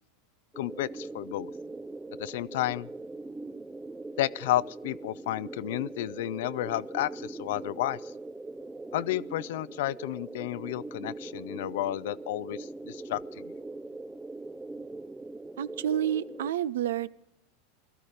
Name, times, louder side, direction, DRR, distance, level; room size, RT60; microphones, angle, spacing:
sound 1, 0.5-16.5, right 2 dB, 10° right, 0.5 m, -41 dB
voice 1, 0.6-1.5 2.2-2.9 4.2-8.1 8.9-13.5, left 15 dB, 70° left, 20 dB, 0.5 m, -32 dB
voice 2, 15.6-17.1, right 10 dB, 80° right, 17 dB, 0.6 m, -29 dB
17.5 x 13.0 x 5.1 m, 0.74 s
hypercardioid pair, 100°, 0 cm